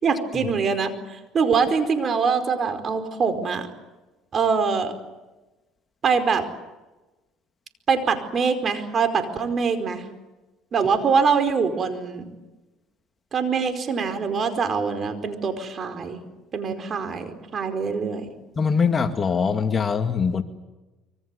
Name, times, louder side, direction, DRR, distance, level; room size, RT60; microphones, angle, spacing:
voice 1, 0.0-0.9 1.3-3.7 4.3-4.9 6.0-6.4 7.9-10.1 10.7-12.3 13.3-16.2 16.5-18.3, right 5 dB, 40° right, 8 dB, 4.8 m, -23 dB
voice 2, 18.6-20.4, left 5 dB, 30° left, 7 dB, 2.2 m, -22 dB
25.5 x 24.5 x 8.3 m, 1.1 s
supercardioid pair, 95°, 0 cm